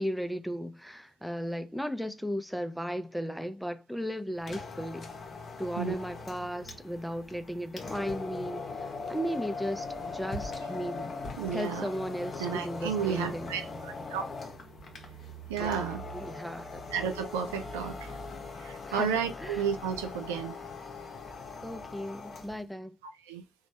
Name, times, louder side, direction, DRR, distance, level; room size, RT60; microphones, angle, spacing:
voice 1, 0.0-5.1 5.6-11.1 11.5-13.5 15.6-15.9 16.1-16.8 18.9-19.6 21.6-23.0, equal, ahead, 0.5 m, -36 dB
sound 1, 4.4-22.6, left 3 dB, 50° left, 0.7 m, -40 dB
voice 2, 11.4-11.9 12.4-14.2 15.5-16.0 16.9-18.2 18.6-20.6 23.2-23.4, right 7 dB, 85° right, 0.3 m, -32 dB
3.0 x 2.2 x 2.7 m
hypercardioid pair, 45°, 0 cm